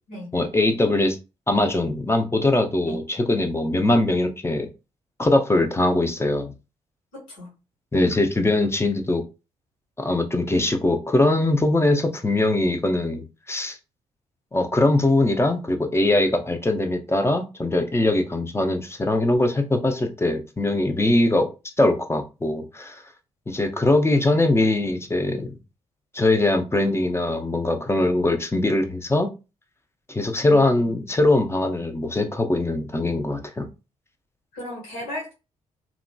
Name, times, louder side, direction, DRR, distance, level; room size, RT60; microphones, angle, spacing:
voice 1, 0.3-1.2 1.5-4.7 5.2-6.5 7.9-9.2 10.0-13.8 14.5-21.5 21.8-23.0 23.5-25.6 26.1-29.3 30.1-33.7, left 2 dB, 15° left, 5 dB, 0.6 m, -21 dB
voice 2, 7.1-7.5 34.5-35.3, left 1 dB, 75° left, -5 dB, 1.0 m, -36 dB
2.9 x 2.1 x 2.6 m, 0.29 s
figure-of-eight pair, 40°, 17 cm